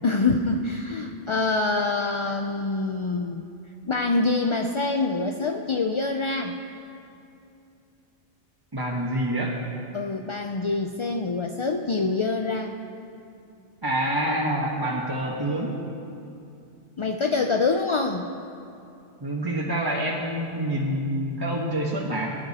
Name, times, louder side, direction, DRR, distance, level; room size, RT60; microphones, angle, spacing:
voice 1, 0.0-3.5 3.8-6.6 9.9-12.8 17.0-18.3, left 3 dB, 45° left, 3 dB, 0.4 m, -25 dB
voice 2, 8.7-9.6 13.8-15.8 19.2-22.4, right 1 dB, 20° right, -3 dB, 1.2 m, -27 dB
22.0 x 10.5 x 4.2 m, 2.6 s
omnidirectional pair, 1.2 m